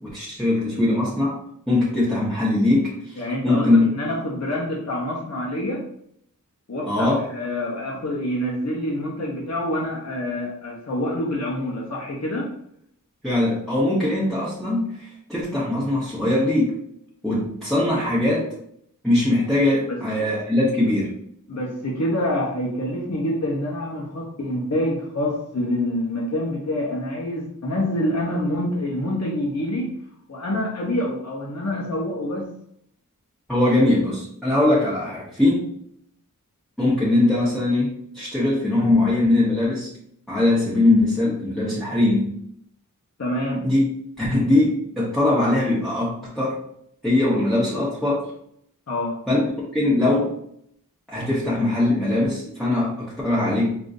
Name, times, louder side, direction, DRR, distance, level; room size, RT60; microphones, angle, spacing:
voice 1, 0.0-1.4 1.7-3.9 6.9-7.3 13.2-16.8 17.2-18.5 19.0-21.1 33.5-35.7 36.8-39.9 40.3-42.3 43.6-43.8 44.2-46.6 47.0-48.3 49.3-49.5 49.7-50.3 51.1-53.8, left 2 dB, ahead, -9 dB, 0.9 m, -21 dB
voice 2, 3.2-3.7 3.9-5.9 6.7-12.5 19.9-20.0 21.5-29.9 30.3-32.5 43.2-43.7 48.9-49.2, left 1 dB, 50° left, -3 dB, 0.7 m, -26 dB
3.6 x 2.5 x 2.5 m, 0.70 s
wide cardioid pair, 45°, 33 cm